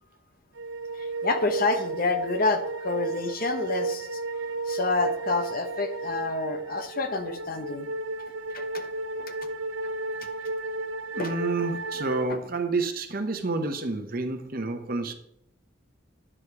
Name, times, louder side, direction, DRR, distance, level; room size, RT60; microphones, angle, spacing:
sound 1, 0.5-12.3, right 3 dB, 70° right, 0.6 m, -33 dB
voice 1, 0.9-4.2 4.6-7.9 8.5-8.9 9.2-9.3 11.2-11.3, left 3 dB, 45° left, 7 dB, 0.9 m, -28 dB
voice 2, 11.1-15.1, right 3 dB, 45° right, 6 dB, 0.9 m, -29 dB
9.9 x 4.9 x 4.8 m, 0.75 s
head